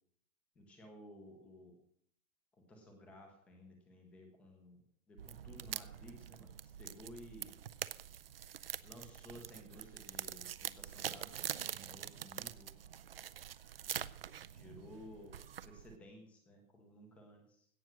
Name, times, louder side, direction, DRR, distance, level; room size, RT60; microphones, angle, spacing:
voice 1, 0.5-1.8 2.5-4.8 5.1-6.5 6.8-7.6 8.8-12.8 14.5-17.7, left 1 dB, 5° left, 3 dB, 0.6 m, -56 dB
sound 1, 5.2-16.0, right 9 dB, 45° right, 0.5 m, -45 dB
17.0 x 6.3 x 7.6 m, 0.63 s
hypercardioid pair, 170°, 42 cm